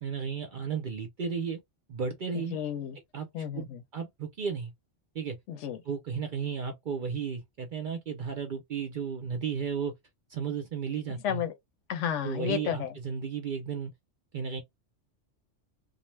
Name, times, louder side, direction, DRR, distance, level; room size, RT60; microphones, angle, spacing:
voice 1, 0.0-1.6 1.9-2.6 3.1-3.7 3.9-4.7 5.1-5.4 5.8-9.9 10.3-11.4 12.2-13.9 14.3-14.6, right 6 dB, 55° right, 0.6 m, -34 dB
voice 2, 2.5-3.0 3.3-3.8 5.5-5.8 11.2-11.5 11.9-12.9, left 9 dB, 75° left, 0.9 m, -32 dB
2.5 x 2.0 x 3.1 m
omnidirectional pair, 1.3 m